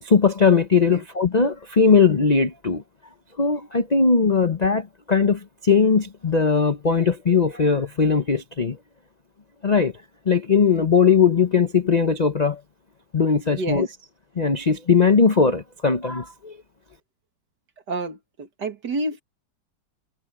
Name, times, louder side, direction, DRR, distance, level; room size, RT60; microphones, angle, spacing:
voice 1, 0.0-2.8 3.4-8.8 9.6-9.9 10.3-12.6 13.1-13.9 14.4-16.6, left 5 dB, 70° left, 0.4 m, -19 dB
voice 2, 13.5-14.0 17.9-19.2, right 2 dB, 55° right, 2.6 m, -29 dB
omnidirectional pair, 2.2 m